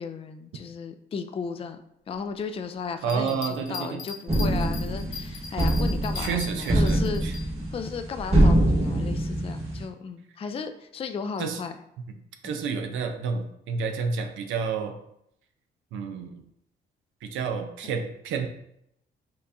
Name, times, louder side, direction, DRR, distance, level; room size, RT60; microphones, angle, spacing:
voice 1, 0.0-1.8 2.1-7.4 7.7-11.7 12.4-12.6, left 5 dB, 30° left, 8 dB, 0.3 m, -35 dB
sound 1, 3.0-7.4, left 5 dB, 85° left, 0.8 m, -39 dB
voice 2, 3.0-4.0 6.2-7.3 11.4-11.6 12.4-14.9 15.9-16.4 17.2-18.5, right 5 dB, 85° right, 5 dB, 0.5 m, -30 dB
sound 2, 4.3-9.8, right 1 dB, 30° right, 1.2 m, -24 dB
4.6 x 3.5 x 2.6 m, 0.76 s
cardioid pair, 90°, 20 cm